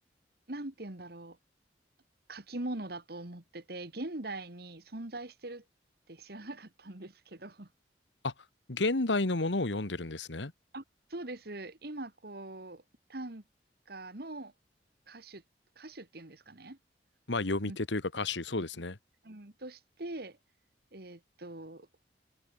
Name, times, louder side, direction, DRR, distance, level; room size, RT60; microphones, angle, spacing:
voice 1, 0.5-1.4 2.3-5.6 6.1-7.7 10.7-10.8 11.1-12.8 13.1-13.4 13.9-14.5 15.1-15.4 15.8-16.8 17.6-17.8 19.2-20.4 20.9-21.9, right 2 dB, 60° right, 2.0 m, -42 dB
voice 2, 8.7-10.5 17.3-19.0, left 2 dB, 80° left, 1.6 m, -31 dB
open air
head